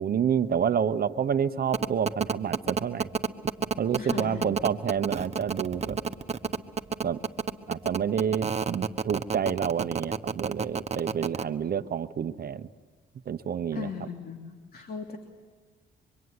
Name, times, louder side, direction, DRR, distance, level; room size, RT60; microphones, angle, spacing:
voice 1, 0.0-3.1 3.8-6.0 7.0-7.2 7.7-12.7 13.3-13.9, right 8 dB, 50° right, 11 dB, 0.9 m, -28 dB
sound 1, 1.7-11.4, right 5 dB, 35° right, 1.4 m, -28 dB
voice 2, 4.0-4.5 13.7-15.2, left 6 dB, 50° left, 3 dB, 3.1 m, -37 dB
25.5 x 24.5 x 9.7 m, 1.4 s
cardioid pair, 90°, 20 cm